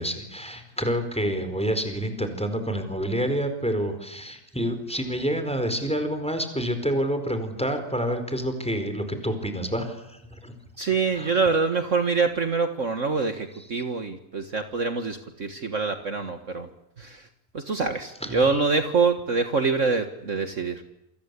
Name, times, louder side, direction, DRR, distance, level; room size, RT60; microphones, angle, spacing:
voice 1, 0.0-10.5 11.1-11.4 13.8-13.9 18.2-18.4, equal, 5° left, 8 dB, 4.5 m, -28 dB
voice 2, 10.8-16.7 17.0-17.3 17.5-20.8, right 4 dB, 50° right, 7 dB, 1.9 m, -25 dB
28.0 x 25.0 x 8.4 m, 0.83 s
omnidirectional pair, 1.7 m